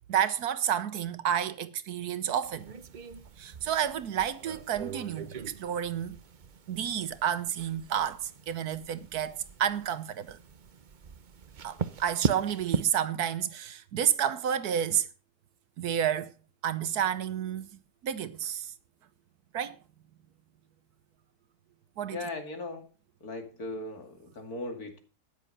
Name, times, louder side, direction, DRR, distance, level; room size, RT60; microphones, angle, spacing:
voice 1, 0.1-2.7 3.4-6.2 6.7-10.4 11.6-15.1 15.8-16.3 16.6-17.8 18.0-18.7 19.5-19.8 22.0-22.3, right 9 dB, 75° right, 1.4 m, -30 dB
sound 1, 2.4-12.8, right 6 dB, 45° right, 0.6 m, -39 dB
voice 2, 22.1-22.9 23.2-25.0, left 2 dB, 65° left, 3.0 m, -38 dB
13.0 x 10.0 x 5.4 m
omnidirectional pair, 1.7 m